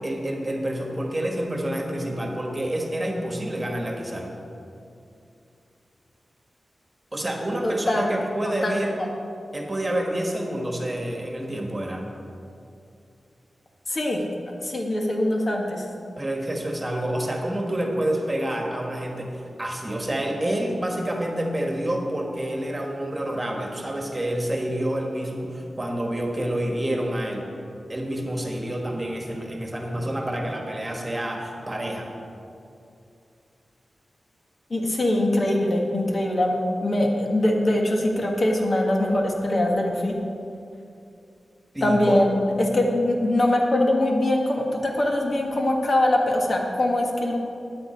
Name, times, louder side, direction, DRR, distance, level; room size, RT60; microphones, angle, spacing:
voice 1, 0.0-4.3 7.1-8.9 9.5-12.0 16.2-27.4 27.9-32.1 41.7-42.2, right 1 dB, 20° right, 1 dB, 1.7 m, -28 dB
voice 2, 7.6-8.1 8.4-8.8 13.9-14.3 14.6-15.8 34.7-40.2 41.8-47.4, left 1 dB, 45° left, 0 dB, 1.5 m, -22 dB
13.5 x 9.8 x 4.5 m, 2.6 s
wide cardioid pair, 95°, 0 cm